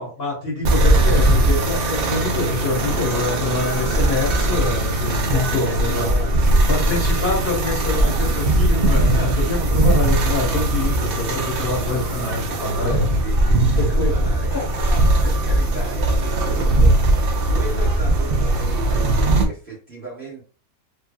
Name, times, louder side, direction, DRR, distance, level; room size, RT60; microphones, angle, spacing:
voice 1, 0.0-6.1 6.7-13.1 13.7-14.1 14.5-14.6, left 3 dB, 40° left, -4 dB, 1.4 m, -25 dB
sound 1, 0.6-19.5, right 1 dB, 75° right, 0.5 m, -19 dB
voice 2, 5.1-6.7 7.1-7.2 13.2-20.4, right 2 dB, 35° right, -7 dB, 1.9 m, -36 dB
3.4 x 2.6 x 2.2 m, 0.38 s
omnidirectional pair, 1.6 m